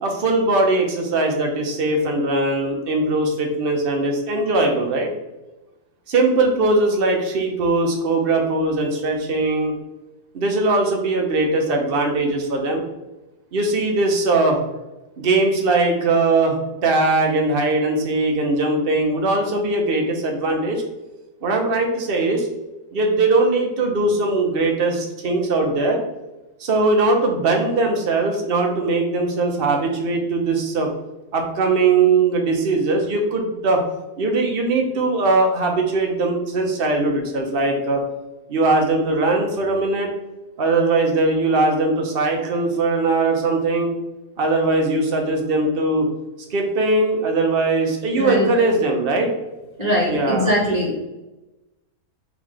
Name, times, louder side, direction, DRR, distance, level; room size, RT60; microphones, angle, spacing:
voice 1, 0.0-5.1 6.1-9.7 10.3-12.8 13.5-14.6 15.2-20.8 21.4-22.5 22.9-26.0 26.6-30.9 31.3-33.8 34.2-38.0 38.5-40.1 40.6-43.9 44.4-46.1 46.5-49.3 50.1-50.5, right 2 dB, 50° right, 2 dB, 0.7 m, -20 dB
voice 2, 48.2-48.5 49.8-51.0, equal, 30° right, -3 dB, 1.0 m, -21 dB
3.6 x 3.2 x 3.7 m, 1.0 s
omnidirectional pair, 1.7 m